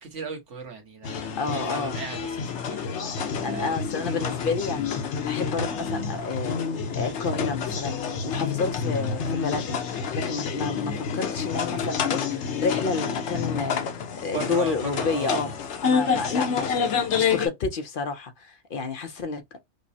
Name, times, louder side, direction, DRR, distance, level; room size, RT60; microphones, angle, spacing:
voice 1, 0.0-2.8 3.4-3.7 14.3-15.4 16.0-16.5, right 5 dB, 90° right, 1.5 m, -37 dB
sound 1, 1.0-17.5, left 6 dB, 75° left, 1.0 m, -28 dB
voice 2, 1.4-2.0 3.4-6.6 7.0-8.0 8.2-15.5 15.8-19.6, left 4 dB, 55° left, 0.7 m, -30 dB
5.1 x 2.0 x 2.6 m
omnidirectional pair, 1.2 m